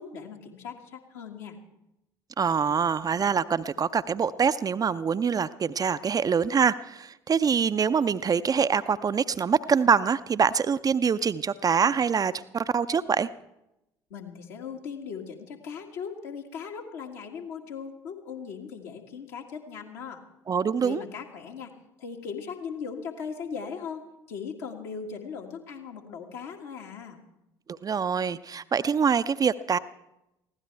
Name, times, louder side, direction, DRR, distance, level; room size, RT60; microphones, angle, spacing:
voice 1, 0.0-1.6 14.1-20.2 20.8-21.7 22.0-27.2, left 6 dB, 65° left, 1 dB, 2.0 m, -38 dB
voice 2, 2.4-13.3 20.5-21.0 27.7-29.8, right 6 dB, 30° right, 12 dB, 0.5 m, -25 dB
22.5 x 16.0 x 3.4 m, 0.89 s
figure-of-eight pair, 55°, 13 cm